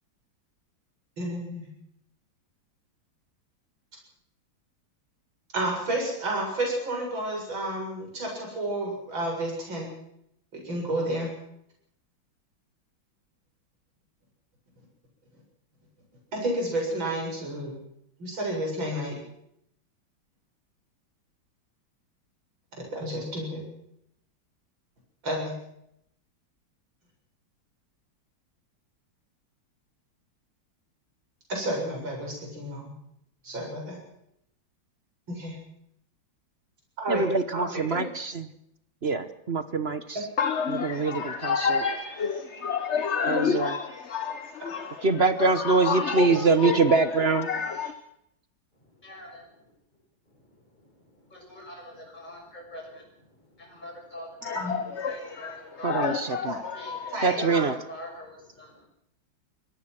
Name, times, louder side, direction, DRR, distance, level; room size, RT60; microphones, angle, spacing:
voice 1, 1.2-1.7 5.5-9.9 10.5-11.3 16.3-17.8 18.2-19.2 22.8-23.6 25.2-25.5 31.5-32.9 33.4-34.0 35.3-35.5 37.0-37.2 37.5-38.0 40.1-40.2 44.6-44.9 54.5-54.8 56.4-56.6 57.1-57.6, right 1 dB, 70° right, 8.3 m, -31 dB
voice 2, 37.1-38.5 39.0-40.2 40.7-41.8 43.2-43.7 45.0-47.5 55.8-56.5 57.2-57.7, right 4 dB, 40° right, 1.1 m, -24 dB
voice 3, 40.4-45.1 45.4-47.9 54.4-57.5, left 6 dB, 40° left, 1.3 m, -30 dB
voice 4, 48.8-49.7 50.2-54.7 55.0-56.1 56.7-58.9, equal, 20° left, 6.7 m, -45 dB
24.0 x 18.0 x 6.1 m
omnidirectional pair, 2.2 m